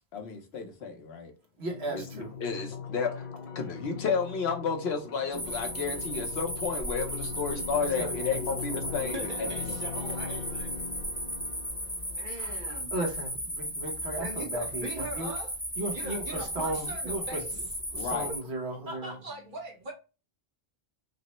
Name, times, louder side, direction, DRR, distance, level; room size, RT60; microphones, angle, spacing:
voice 1, 0.1-1.3 1.9-3.3 3.5-9.8 18.0-18.3, left 5 dB, 75° left, 1.0 m, -32 dB
voice 2, 1.6-2.3 7.8-8.4 8.7-9.0 12.4-15.3 15.8-17.4 17.9-19.2, right 1 dB, 80° right, 1.3 m, -36 dB
sound 1, 1.7-12.7, left 6 dB, 55° left, 0.6 m, -41 dB
sound 2, 5.3-18.4, equal, 5° left, 0.8 m, -35 dB
voice 3, 9.1-10.7 12.1-12.9 14.2-15.5 15.9-17.5 18.9-19.9, right 1 dB, 50° right, 1.1 m, -40 dB
5.1 x 2.1 x 2.9 m
omnidirectional pair, 1.1 m